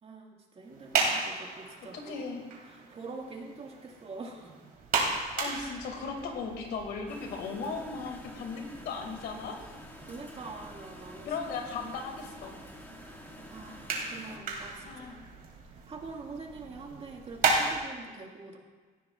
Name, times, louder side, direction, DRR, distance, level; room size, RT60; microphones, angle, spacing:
voice 1, 0.0-2.3 2.7-4.7 5.3-5.6 10.0-11.3 13.5-15.0 15.6-18.6, right 3 dB, 35° right, 1 dB, 1.8 m, -45 dB
sound 1, 0.6-17.8, right 4 dB, 60° right, 2.5 m, -36 dB
voice 2, 1.9-2.4 5.4-9.6 11.2-12.6 14.9-15.3, left 4 dB, 75° left, 3 dB, 2.2 m, -37 dB
sound 2, 7.1-14.4, left 1 dB, 10° left, 1.8 m, -49 dB
17.5 x 12.0 x 2.4 m, 1.4 s
cardioid pair, 110°, 17 cm